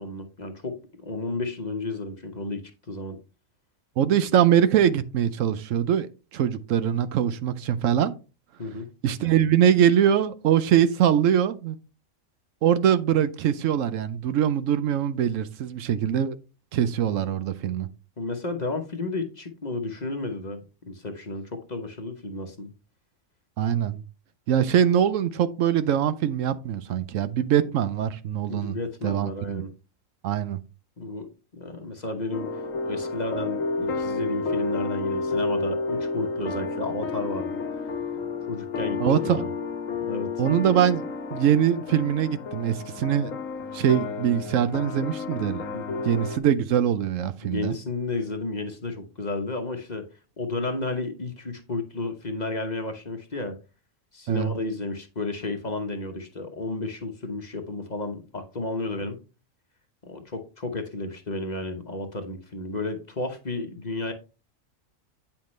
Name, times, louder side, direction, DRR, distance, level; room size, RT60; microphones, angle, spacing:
voice 1, 0.0-3.2 8.6-8.9 18.2-22.7 28.5-29.7 31.0-37.6 38.5-39.5 40.0-40.4 45.7-46.0 47.4-50.1 50.4-53.6 54.1-59.2 60.0-64.1, left 2 dB, 35° left, 1.0 m, -32 dB
voice 2, 4.0-6.1 6.3-8.1 9.0-11.8 12.6-16.4 16.7-17.9 23.6-24.0 24.5-28.8 29.0-29.6 30.2-30.6 39.0-39.5 40.4-41.0 41.3-43.3 43.7-45.8 46.0-47.8 54.3-54.6, right 9 dB, 75° right, 1.0 m, -23 dB
sound 1, 32.3-46.4, left 4 dB, 80° left, 1.3 m, -31 dB
8.7 x 5.8 x 3.2 m
omnidirectional pair, 1.4 m